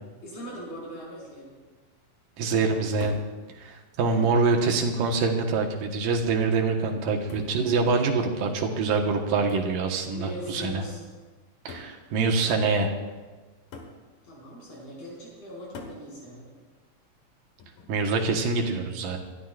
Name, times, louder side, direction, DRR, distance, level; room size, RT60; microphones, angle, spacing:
voice 1, 0.2-1.5 4.1-4.3 10.1-11.0 14.2-16.5, equal, 45° left, -5 dB, 6.9 m, -40 dB
voice 2, 2.4-3.2 3.6-10.8 11.7-12.9 17.9-19.2, right 4 dB, 70° right, 2 dB, 2.9 m, -25 dB
sound 1, 3.0-3.4 4.4-4.5 5.1-5.5 7.3-7.7 9.5-9.8 10.8-10.9 11.7-12.0 13.7-14.0 15.7-16.1 17.6-18.0, left 3 dB, 75° left, 3.2 m, -43 dB
27.0 x 13.0 x 2.5 m, 1.3 s
omnidirectional pair, 4.1 m